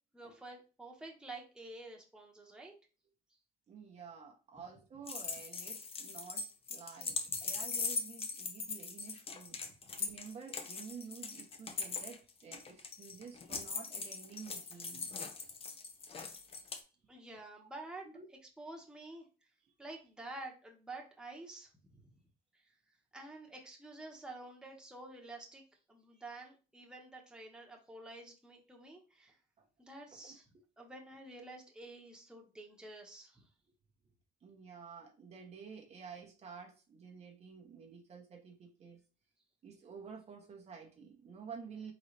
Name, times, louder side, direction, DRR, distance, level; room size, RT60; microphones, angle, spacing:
voice 1, 0.1-2.7 7.3-7.4 9.6-9.7 17.1-18.1 18.6-19.3 19.8-22.0 22.5-22.7 23.1-25.6 25.9-29.4 29.8-30.5 30.8-33.5, right 2 dB, 5° right, 0 dB, 1.1 m, -49 dB
voice 2, 3.7-9.6 10.0-15.1 18.0-18.3 19.6-19.7 26.1-26.2 29.6-29.7 30.1-30.6 34.4-39.0 39.6-41.9, right 6 dB, 40° right, 0 dB, 0.9 m, -51 dB
sound 1, 5.1-16.8, left 4 dB, 35° left, 0.7 m, -40 dB
3.9 x 3.9 x 3.2 m, 0.34 s
cardioid pair, 110°, 17 cm